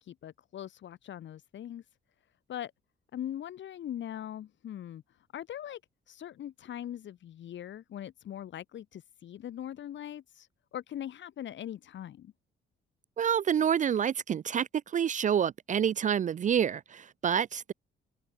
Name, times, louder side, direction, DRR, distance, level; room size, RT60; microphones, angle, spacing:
voice 1, 0.0-1.8 2.5-2.7 3.1-5.8 6.1-12.3, left 11 dB, 70° left, 3.2 m, -41 dB
voice 2, 13.2-17.7, right 8 dB, 40° right, 0.4 m, -28 dB
cardioid pair, 90°, 20 cm